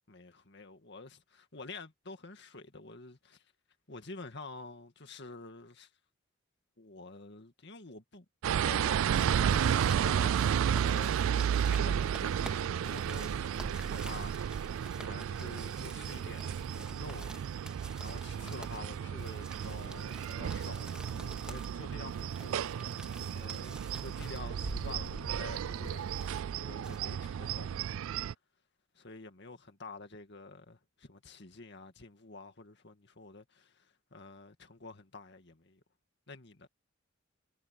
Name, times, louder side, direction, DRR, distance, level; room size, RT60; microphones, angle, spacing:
voice 1, 0.1-3.5 3.9-5.9 6.8-17.4 18.0-28.1 28.9-35.8 36.3-36.7, left 3 dB, 55° left, 2.1 m, -49 dB
sound 1, 8.4-28.3, right 8 dB, 80° right, 0.3 m, -33 dB
sound 2, 8.8-27.0, right 1 dB, 5° right, 2.1 m, -49 dB
head